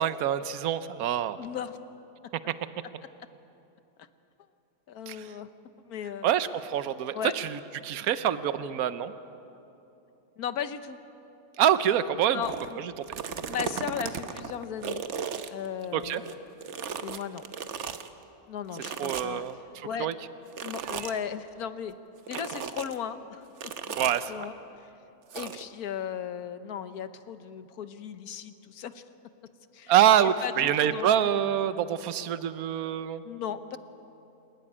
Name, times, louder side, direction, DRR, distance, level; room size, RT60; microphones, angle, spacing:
voice 1, 0.0-1.4 2.5-2.6 5.1-5.2 6.2-9.1 11.6-12.4 15.9-16.2 19.0-19.6 20.0-20.1 20.9-21.1 24.0-24.3 29.9-33.2, right 10 dB, 75° right, 13 dB, 1.2 m, -25 dB
voice 2, 1.4-1.8 4.9-5.5 5.8-6.3 7.1-7.3 10.4-11.0 12.3-12.8 13.5-15.1 15.5-16.4 17.0-17.5 18.5-19.5 19.8-20.1 20.6-21.9 22.3-23.5 23.8-24.0 24.3-24.5 24.8-24.9 25.3-29.0 29.7-29.9 30.2-31.1 31.4-31.6 33.2-33.8, left 8 dB, 80° left, 11 dB, 1.4 m, -36 dB
sound 1, 12.4-12.7 13.0-16.3 16.6-18.1 18.8-19.5 20.5-21.2 22.3-23.0 23.6-24.2 25.3-25.6, right 6 dB, 55° right, 1.1 m, -36 dB
27.0 x 14.0 x 9.8 m, 2.9 s
omnidirectional pair, 1.6 m